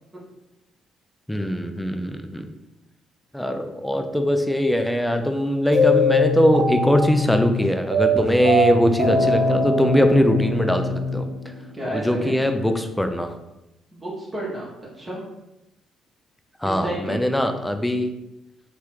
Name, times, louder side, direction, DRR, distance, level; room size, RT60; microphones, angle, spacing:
voice 1, 1.3-2.4 3.3-11.3 11.8-13.4 16.6-18.1, equal, 5° left, 6 dB, 0.4 m, -21 dB
sound 1, 5.7-11.9, left 1 dB, 75° right, 0.7 m, -22 dB
voice 2, 11.7-12.4 13.9-15.2 16.6-17.2, right 1 dB, 20° right, -5 dB, 1.0 m, -31 dB
2.9 x 2.3 x 3.1 m, 0.92 s
figure-of-eight pair, 45°, 0 cm